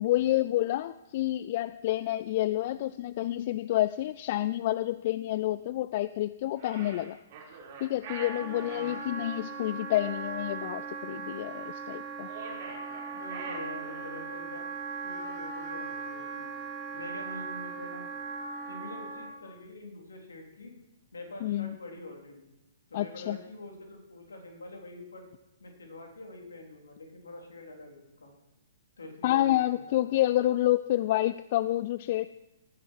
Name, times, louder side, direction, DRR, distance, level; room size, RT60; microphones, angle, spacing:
voice 1, 0.0-7.2 7.8-12.3 21.4-21.8 22.9-23.4 29.2-32.3, left 14 dB, 45° left, 15 dB, 0.3 m, -28 dB
sound 1, 6.6-9.0 12.2-14.3, right 4 dB, 45° right, 4.6 m, -44 dB
Wind instrument woodwind instrument, 8.0-19.4, right 4 dB, 25° right, 3.3 m, -39 dB
voice 2, 13.1-14.6 15.0-16.5 16.9-18.0 18.7-20.7 21.1-22.5 22.9-25.2 25.6-28.3 29.0-30.1, left 2 dB, 75° left, 2 dB, 3.7 m, -45 dB
18.0 x 9.9 x 4.7 m, 0.93 s
figure-of-eight pair, 120°, 0 cm